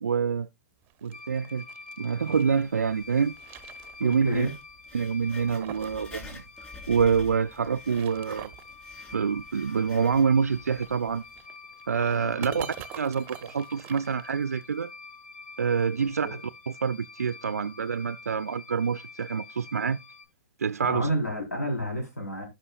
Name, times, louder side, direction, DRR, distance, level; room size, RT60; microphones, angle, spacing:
voice 1, 0.0-0.5 1.0-1.6 2.0-3.3 4.0-4.5 4.9-6.4 6.9-8.5 9.1-11.2 11.9-12.7 13.0-14.9 15.6-16.3 16.8-20.0 20.6-21.1, right 6 dB, 75° right, 0.4 m, -26 dB
sound 1, 0.8-2.6 3.1-4.3 4.6-4.7 5.2-6.0 6.3-6.4 7.6-8.7 10.7-14.7, right 14 dB, 25° right, 0.6 m, -45 dB
sound 2, 1.1-20.2, left 3 dB, 50° left, 2.0 m, -47 dB
Writing, 2.2-11.4, left 3 dB, 15° left, 2.9 m, -50 dB
voice 2, 4.0-4.5 12.2-12.7 16.0-16.4 20.8-22.5, equal, 80° left, 4.4 m, -31 dB
16.0 x 5.5 x 2.4 m
figure-of-eight pair, 115°, 8 cm